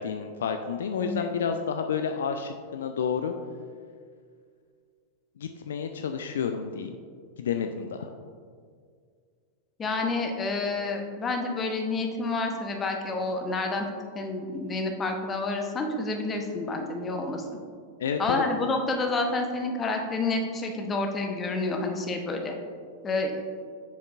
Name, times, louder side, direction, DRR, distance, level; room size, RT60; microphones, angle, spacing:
voice 1, 0.0-3.3 5.4-7.0 7.4-8.1 18.0-18.4, left 6 dB, 65° left, 6 dB, 0.3 m, -30 dB
voice 2, 1.0-1.3 9.8-13.9 14.1-17.6 18.2-22.5 23.0-23.4, left 3 dB, 20° left, 3 dB, 0.9 m, -29 dB
7.2 x 7.2 x 2.4 m, 2.1 s
figure-of-eight pair, 90°, 0 cm